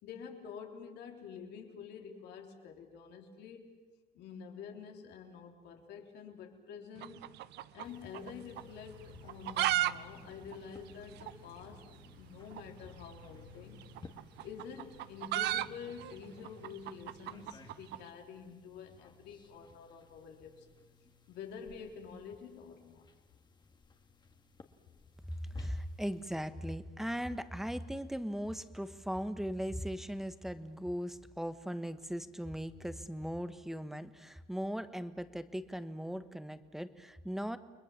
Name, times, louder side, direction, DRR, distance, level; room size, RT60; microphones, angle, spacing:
voice 1, 0.0-3.7 4.1-7.3 7.7-11.9 12.2-13.8 14.4-20.7 21.3-23.1, left 6 dB, 80° left, 2 dB, 3.7 m, -48 dB
sound 1, 7.0-8.3 8.6-8.7 9.2-9.9 10.2-10.3 10.5-10.6 11.2-11.3 12.5-12.7 13.8-18.0, right 15 dB, 80° right, 0.7 m, -34 dB
sound 2, 7.8-26.2, left 4 dB, 25° left, 1.9 m, -57 dB
voice 2, 25.5-37.6, equal, ahead, 11 dB, 1.2 m, -38 dB
29.5 x 21.5 x 7.3 m, 1.3 s
cardioid pair, 110°, 17 cm